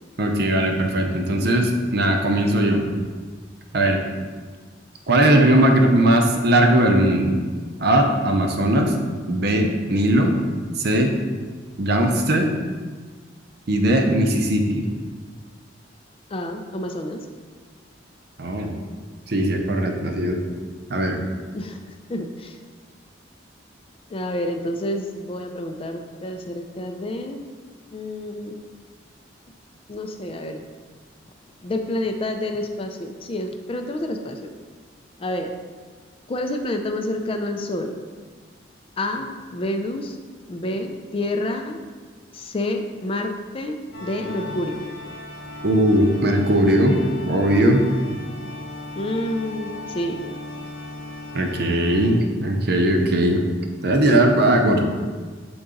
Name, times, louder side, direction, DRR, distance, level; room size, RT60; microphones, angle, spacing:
voice 1, 0.2-2.8 3.7-4.0 5.1-7.4 7.8-8.9 9.3-10.3 10.8-11.1 11.8-12.6 13.7-14.9 18.4-18.8 19.3-20.4 20.9-21.2 45.6-47.0 47.3-47.8 51.3-53.4 53.8-54.8, right 1 dB, 55° right, 4 dB, 0.7 m, -19 dB
voice 2, 16.3-17.3 21.5-22.6 24.1-27.4 27.9-28.6 29.9-30.6 31.6-34.5 35.2-35.5 36.3-37.9 39.0-40.2 40.5-41.8 42.3-44.8 49.0-50.2, left 1 dB, 30° left, 5 dB, 0.4 m, -28 dB
sound 1, 43.9-52.1, left 2 dB, 75° left, 0.9 m, -37 dB
6.9 x 3.9 x 3.8 m, 1.5 s
head